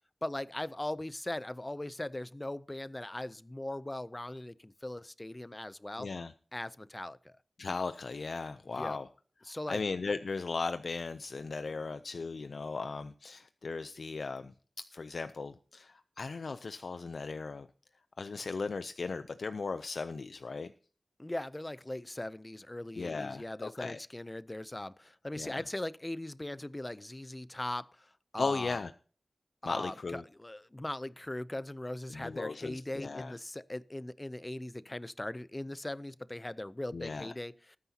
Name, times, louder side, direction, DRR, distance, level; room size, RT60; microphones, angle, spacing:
voice 1, 0.2-6.1 6.5-7.4 8.7-9.0 9.4-9.8 21.2-28.8 29.6-37.8, left 1 dB, 20° left, 0.5 m, -39 dB
voice 2, 6.0-6.3 7.6-9.1 9.7-14.5 14.9-17.7 18.2-20.7 23.0-24.0 25.4-25.6 28.4-28.9 29.6-30.2 32.1-33.3 36.9-37.3, left 4 dB, 80° left, 0.5 m, -37 dB
19.0 x 9.6 x 2.8 m
wide cardioid pair, 85°, 0 cm